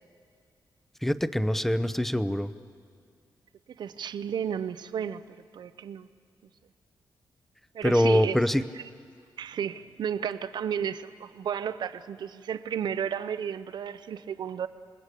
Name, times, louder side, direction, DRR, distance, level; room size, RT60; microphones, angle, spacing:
voice 1, 1.0-2.5 7.8-8.6, equal, 5° left, 0.7 m, -24 dB
voice 2, 3.8-5.2 5.5-6.1 7.7-8.4 9.4-14.7, right 8 dB, 70° right, 0.7 m, -33 dB
27.5 x 20.5 x 8.3 m
wide cardioid pair, 140°, 8 cm